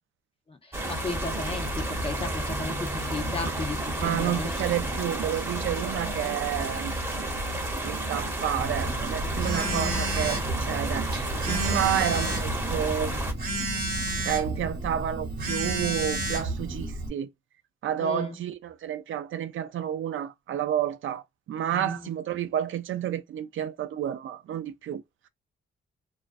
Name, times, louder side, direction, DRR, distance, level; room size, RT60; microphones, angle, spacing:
voice 1, 0.5-4.7 6.0-6.1 9.6-10.1 18.0-18.4 21.7-22.1, left 3 dB, 25° left, 0.5 m, -35 dB
sound 1, 0.7-13.3, right 1 dB, 10° right, 0.8 m, -31 dB
voice 2, 4.0-6.9 7.8-11.1 11.5-13.3 14.3-17.3 17.8-21.2 21.5-25.0, right 10 dB, 75° right, 0.4 m, -30 dB
Telephone, 8.6-17.1, right 2 dB, 50° right, 0.9 m, -31 dB
2.4 x 2.1 x 2.4 m
cardioid pair, 90°, 21 cm